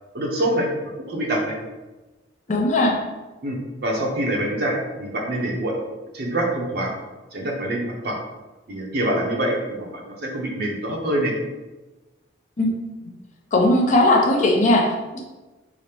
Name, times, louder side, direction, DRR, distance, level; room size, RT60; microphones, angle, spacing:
voice 1, 0.1-0.7 1.0-1.5 3.4-5.7 6.1-6.9 7.3-8.2 8.7-11.3, right 1 dB, 55° right, 0 dB, 0.6 m, -25 dB
voice 2, 2.5-3.0 12.6-12.9 13.5-15.2, left 1 dB, 40° left, -1 dB, 0.5 m, -18 dB
4.8 x 2.0 x 2.9 m, 1.2 s
head